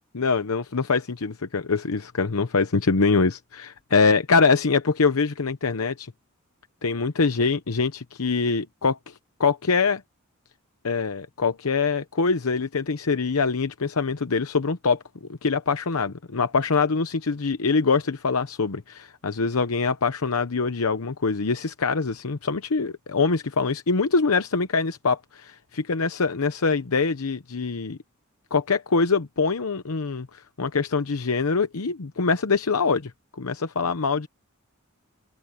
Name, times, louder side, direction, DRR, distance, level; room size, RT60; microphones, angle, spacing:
voice 1, 0.1-6.1 6.8-10.0 10.8-15.0 15.4-28.0 28.5-33.1 33.4-34.3, left 4 dB, 85° left, 0.9 m, -24 dB
open air
head